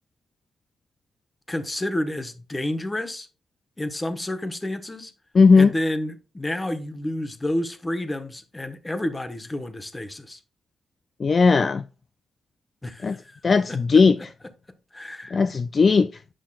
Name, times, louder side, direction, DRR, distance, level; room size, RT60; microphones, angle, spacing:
voice 1, 1.5-3.3 3.8-5.1 5.6-10.4 12.8-13.4 13.7-14.0 14.9-15.4, left 1 dB, 15° left, 1.0 m, -30 dB
voice 2, 5.4-5.7 11.2-11.8 13.0-13.2 13.4-14.2 15.3-16.1, left 4 dB, 40° left, 0.3 m, -17 dB
8.8 x 5.6 x 2.3 m
cardioid pair, 100°, 0 cm